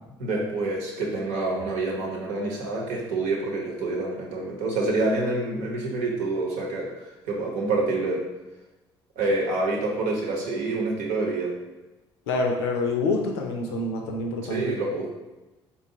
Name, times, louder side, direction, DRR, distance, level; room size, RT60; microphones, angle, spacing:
voice 1, 0.2-6.9 7.3-8.2 9.2-11.5 14.5-15.1, right 2 dB, 65° right, -2 dB, 0.9 m, -27 dB
voice 2, 12.3-14.7, left 3 dB, 75° left, 2 dB, 0.6 m, -27 dB
4.0 x 2.3 x 3.8 m, 1.1 s
figure-of-eight pair, 50°, 14 cm